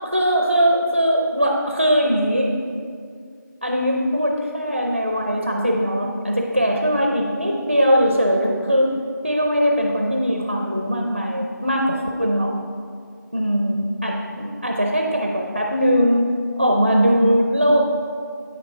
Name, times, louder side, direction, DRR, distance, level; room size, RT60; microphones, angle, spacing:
voice 1, 0.1-2.5 3.6-8.9 9.2-12.5 13.3-16.3 16.6-18.0, equal, 30° right, 1 dB, 0.5 m, -20 dB
9.0 x 6.2 x 4.7 m, 2.2 s
figure-of-eight pair, 175°, 11 cm